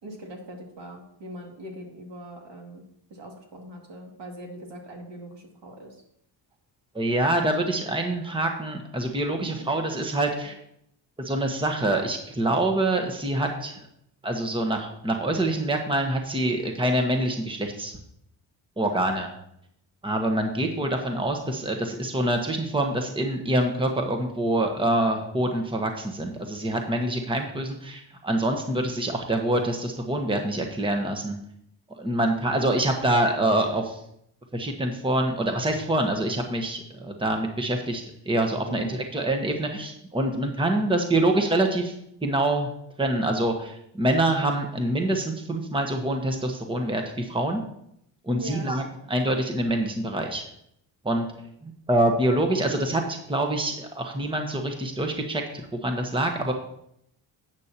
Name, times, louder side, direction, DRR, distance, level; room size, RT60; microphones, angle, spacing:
voice 1, 0.0-2.8 3.1-6.0 9.3-9.7 38.7-39.0 48.4-48.7, right 1 dB, 60° right, 1 dB, 2.6 m, -41 dB
voice 2, 6.9-10.6 11.2-13.8 14.2-17.9 18.8-19.3 20.0-31.4 32.0-34.0 34.5-41.9 42.2-42.7 43.0-47.6 48.2-50.4 51.0-51.3 51.6-56.5, right 1 dB, 10° right, 3 dB, 1.3 m, -25 dB
10.5 x 8.4 x 3.0 m, 0.74 s
cardioid pair, 70°, 47 cm